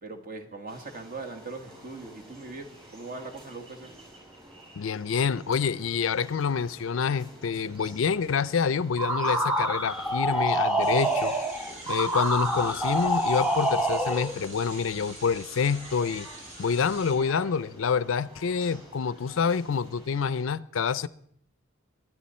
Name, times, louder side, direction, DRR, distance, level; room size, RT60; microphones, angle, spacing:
voice 1, 0.0-3.9, right 3 dB, 45° right, 1.7 m, -40 dB
sound 1, 0.7-20.5, right 1 dB, 25° right, 6.4 m, -50 dB
voice 2, 4.8-11.3 11.9-16.3 16.6-21.1, left 6 dB, 75° left, 0.5 m, -27 dB
sound 2, 9.0-14.4, right 1 dB, 5° right, 0.8 m, -26 dB
sound 3, 10.8-17.1, right 1 dB, 70° right, 6.3 m, -45 dB
22.5 x 9.2 x 4.3 m
head